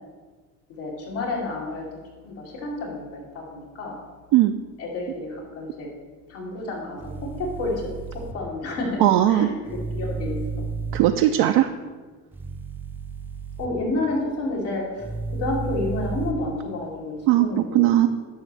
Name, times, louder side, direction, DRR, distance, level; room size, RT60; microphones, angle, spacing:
voice 1, 0.8-1.8 2.2-4.0 4.8-5.9 6.3-7.0 7.4-7.7 8.3-9.0 9.3-10.4 13.6-15.1 15.4-17.1 17.4-17.9, left 2 dB, 80° left, -4 dB, 2.7 m, -30 dB
sound 1, 7.0-8.3 9.7-11.0 12.3-13.7 15.0-16.3, right 4 dB, 5° right, 0.6 m, -32 dB
voice 2, 9.0-9.5 10.9-11.7 17.3-18.1, right 13 dB, 65° right, 6 dB, 0.5 m, -18 dB
10.0 x 6.3 x 3.3 m, 1.4 s
supercardioid pair, 75°, 43 cm